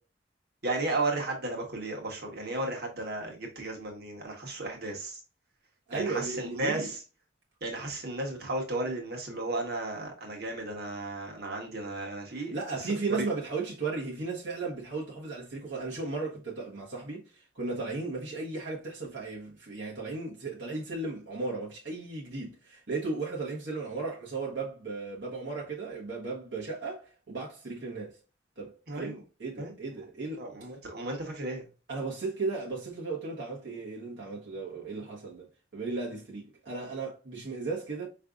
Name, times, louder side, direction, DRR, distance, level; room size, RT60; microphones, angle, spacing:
voice 1, 0.6-5.2 5.9-7.0 7.6-12.5 13.2-13.3 28.9-29.2 29.6-29.7 30.4-31.6, right 2 dB, 60° right, 1.5 m, -34 dB
voice 2, 5.9-6.9 12.4-28.2 28.6-30.5 31.9-35.5 35.7-38.1, right 3 dB, 75° right, 1.3 m, -35 dB
4.9 x 3.2 x 2.5 m
head